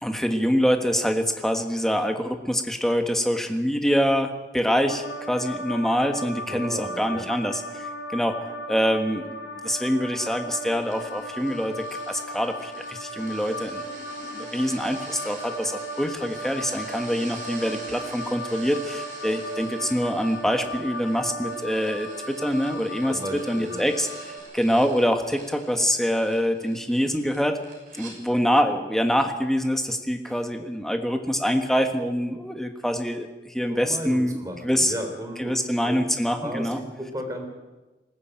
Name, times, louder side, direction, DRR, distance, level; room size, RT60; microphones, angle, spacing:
voice 1, 0.0-8.4 8.7-13.8 14.3-27.6 27.9-34.4 34.6-34.9 35.4-36.8, equal, ahead, 5 dB, 1.5 m, -25 dB
sound 1, 4.9-24.4, equal, 90° left, 6.6 m, -36 dB
voice 2, 6.4-7.2 23.1-23.9 30.2-30.4 33.7-36.1 36.4-37.5, equal, 20° right, 4 dB, 3.3 m, -34 dB
sound 2, 10.7-28.1, right 3 dB, 45° right, 6.2 m, -46 dB
20.0 x 15.0 x 9.0 m, 1.2 s
head